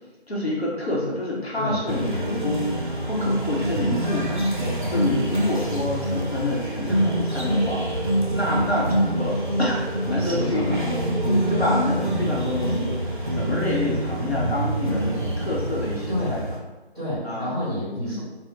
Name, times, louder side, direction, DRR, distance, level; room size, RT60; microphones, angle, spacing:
voice 1, 0.3-4.5 4.9-16.4 17.2-17.5 18.0-18.2, left 2 dB, 70° left, -4 dB, 0.9 m, -28 dB
voice 2, 1.5-2.4 4.6-5.0 10.2-10.8 11.4-11.7 16.1-16.4 16.9-18.2, left 1 dB, 5° right, -16 dB, 1.4 m, -29 dB
sound 1, 1.9-16.6, right 1 dB, 50° right, 0.4 m, -26 dB
2.6 x 2.1 x 3.7 m, 1.1 s
figure-of-eight pair, 170°, 32 cm